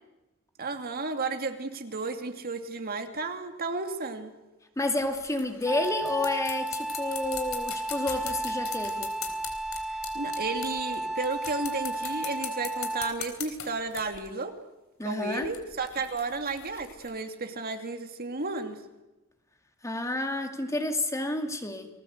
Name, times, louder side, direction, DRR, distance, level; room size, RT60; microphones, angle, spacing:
voice 1, 0.6-4.3 9.9-14.5 15.0-18.8, right 3 dB, 45° right, 6 dB, 2.6 m, -33 dB
voice 2, 4.8-9.1 15.0-15.5 19.8-21.9, left 2 dB, 15° left, 6 dB, 2.3 m, -30 dB
sound 1, 5.0-11.0 11.2-14.2 15.4-17.1, left 9 dB, 70° left, 4.1 m, -41 dB
Wind instrument woodwind instrument, 5.6-13.3, right 1 dB, ahead, 2.1 m, -33 dB
29.5 x 20.0 x 8.1 m, 1.0 s
head